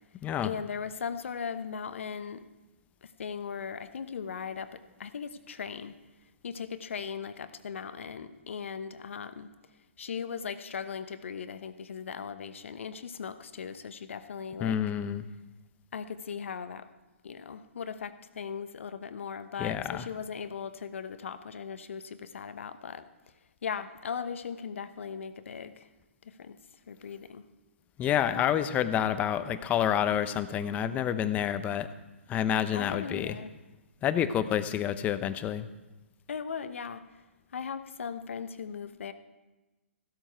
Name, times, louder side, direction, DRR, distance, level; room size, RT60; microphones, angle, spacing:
voice 1, 0.4-2.4 3.0-5.9 6.4-9.5 10.0-14.8 15.9-16.9 17.2-23.0 23.6-25.9 26.2-26.6 26.9-27.4 32.7-33.5 36.3-37.0 37.5-39.1, left 6 dB, 70° left, 11 dB, 1.0 m, -38 dB
voice 2, 14.6-15.2 19.6-20.0 28.0-31.9 32.3-33.4 34.0-35.7, left 10 dB, 20° left, 12 dB, 0.7 m, -28 dB
15.0 x 12.5 x 4.6 m, 1.1 s
hypercardioid pair, 130°, 7 cm